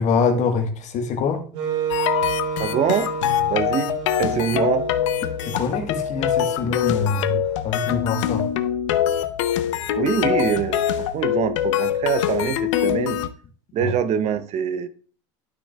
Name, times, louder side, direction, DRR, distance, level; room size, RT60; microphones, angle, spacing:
voice 1, 0.0-1.4 5.4-8.4 13.8-13.9, left 5 dB, 50° left, 1.3 m, -24 dB
Wind instrument woodwind instrument, 1.5-7.6, right 7 dB, 80° right, 1.4 m, -31 dB
sound 1, 1.9-13.3, left 10 dB, 90° left, 0.6 m, -24 dB
voice 2, 2.6-3.1 3.5-4.9 10.0-13.2 13.7-14.9, right 8 dB, 45° right, 0.6 m, -24 dB
11.5 x 6.1 x 2.3 m
supercardioid pair, 100°, 15 cm